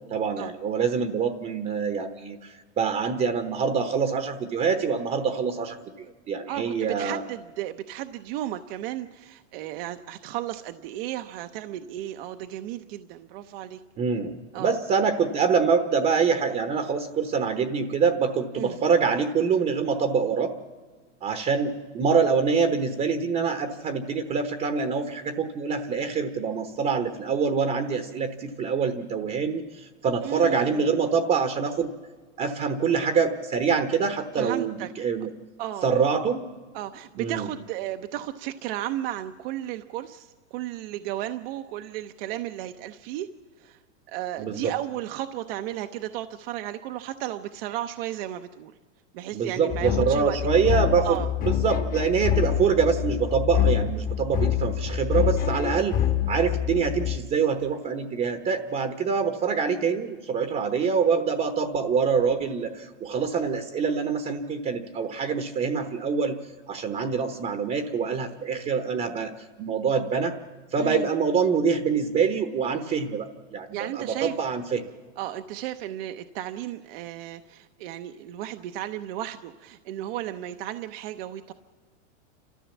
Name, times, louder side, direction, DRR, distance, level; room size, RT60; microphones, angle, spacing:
voice 1, 0.1-7.2 14.0-20.5 21.2-31.9 32.4-35.3 35.8-36.4 37.2-37.5 44.4-44.7 49.3-56.0 56.3-66.4 66.7-69.3 69.6-70.3 70.7-73.7 73.9-74.8, right 6 dB, 20° right, 8 dB, 1.0 m, -25 dB
voice 2, 6.5-13.8 14.5-14.8 18.6-18.8 30.2-30.9 34.4-34.9 35.6-35.9 36.7-43.3 43.6-43.8 44.1-48.7 49.1-50.4 50.7-51.3 70.8-71.1 73.7-74.3 75.2-81.5, right 13 dB, 50° right, 8 dB, 0.8 m, -34 dB
sound 1, 49.7-57.2, left 10 dB, 25° left, 1.1 m, -26 dB
29.5 x 14.0 x 7.2 m, 1.5 s
supercardioid pair, 145°, 37 cm